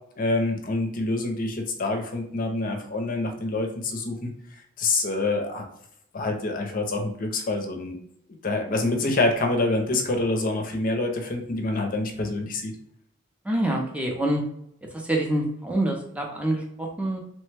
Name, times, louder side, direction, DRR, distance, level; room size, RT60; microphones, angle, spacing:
voice 1, 0.2-4.3 4.8-5.6 6.1-8.0 8.4-12.7, left 2 dB, 45° left, 3 dB, 0.5 m, -26 dB
voice 2, 8.8-9.1 13.4-14.4 14.9-17.2, right 1 dB, 5° right, 0 dB, 0.5 m, -26 dB
3.1 x 2.1 x 3.3 m, 0.70 s
head